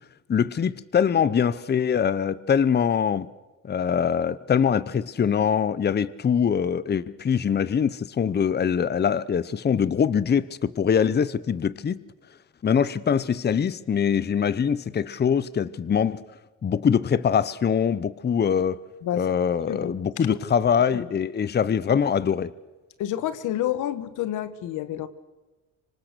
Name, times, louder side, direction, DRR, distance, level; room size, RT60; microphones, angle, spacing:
voice 1, 0.3-3.3 3.6-12.0 12.6-16.2 16.6-18.8 19.2-22.5, left 7 dB, 35° left, 0.8 m, -23 dB
voice 2, 19.0-19.3 19.7-20.4 20.9-21.1 23.0-25.1, left 12 dB, 85° left, 1.4 m, -29 dB
25.5 x 25.5 x 6.8 m
cardioid pair, 90°, 30 cm